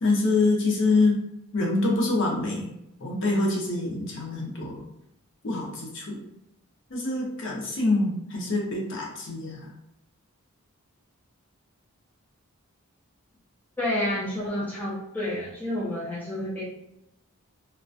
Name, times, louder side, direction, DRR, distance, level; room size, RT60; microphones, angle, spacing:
voice 1, 0.0-1.2 1.5-2.7 3.0-4.8 5.4-6.2 6.9-9.7, left 2 dB, 55° left, -2 dB, 0.6 m, -25 dB
voice 2, 13.8-16.6, left 1 dB, 10° left, -7 dB, 0.4 m, -29 dB
2.4 x 2.2 x 2.4 m, 0.82 s
head